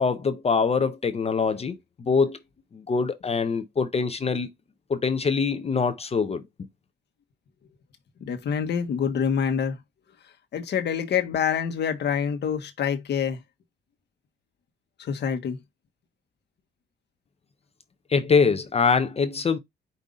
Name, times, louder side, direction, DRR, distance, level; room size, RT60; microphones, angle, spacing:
voice 1, 0.0-2.4 2.7-4.5 4.9-6.4 18.1-19.6, left 5 dB, 30° left, 0.6 m, -24 dB
voice 2, 8.2-9.8 10.5-13.4 15.0-15.6, left 7 dB, 60° left, 1.1 m, -26 dB
5.3 x 2.6 x 3.6 m
cardioid pair, 90°, 20 cm